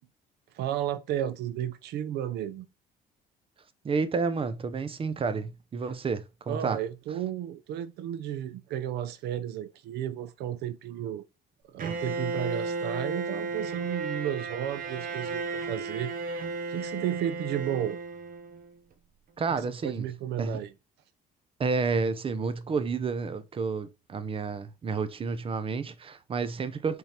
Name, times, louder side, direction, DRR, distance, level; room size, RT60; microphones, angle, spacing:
voice 1, 0.5-2.7 6.5-11.2 11.7-16.1 16.7-18.0 19.5-20.7, right 11 dB, 80° right, 0.7 m, -33 dB
voice 2, 3.8-6.8 19.4-20.1 20.4-20.6 21.6-27.0, right 4 dB, 30° right, 0.7 m, -30 dB
Bowed string instrument, 11.8-18.7, right 3 dB, 55° right, 1.2 m, -34 dB
5.6 x 3.8 x 4.3 m
cardioid pair, 110°, 17 cm